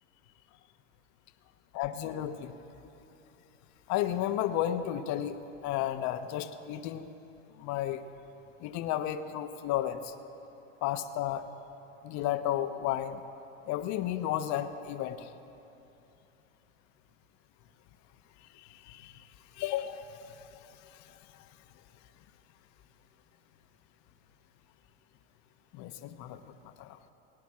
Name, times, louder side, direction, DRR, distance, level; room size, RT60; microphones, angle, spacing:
voice 1, 1.7-2.5 3.9-5.4 5.6-7.1 7.6-8.0 8.6-10.1 10.8-11.4 12.0-13.2 13.7-15.3 18.5-19.3 19.5-20.6 20.9-21.5 25.7-27.0, left 11 dB, 45° left, 9 dB, 1.0 m, -33 dB
19.0 x 9.3 x 7.4 m, 3.0 s
hypercardioid pair, 100°, 39 cm